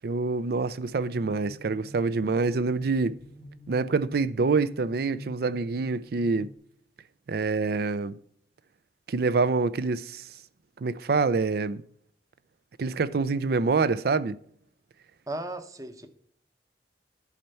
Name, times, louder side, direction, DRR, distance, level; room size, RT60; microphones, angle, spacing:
voice 1, 0.0-3.2 3.7-6.5 7.3-8.2 9.1-10.2 10.8-11.8 12.8-14.4, right 4 dB, 60° right, 0.4 m, -26 dB
sound 1, 0.9-6.5, left 1 dB, 40° right, 2.8 m, -47 dB
voice 2, 15.3-16.1, right 2 dB, 20° right, 0.8 m, -36 dB
11.0 x 4.4 x 5.4 m
head